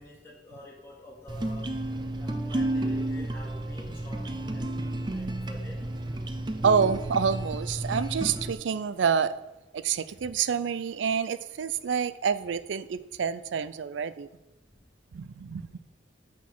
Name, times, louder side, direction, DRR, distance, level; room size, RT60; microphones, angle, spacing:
voice 1, 0.0-1.8 2.2-5.8 10.2-10.3 15.5-15.6, left 1 dB, 15° left, -5 dB, 2.3 m, -48 dB
sound 1, 1.3-8.5, right 1 dB, 25° right, 0.5 m, -32 dB
voice 2, 6.6-9.4 9.7-14.3 15.1-15.7, right 6 dB, 90° right, 15 dB, 0.4 m, -27 dB
6.2 x 5.9 x 6.1 m, 0.95 s
head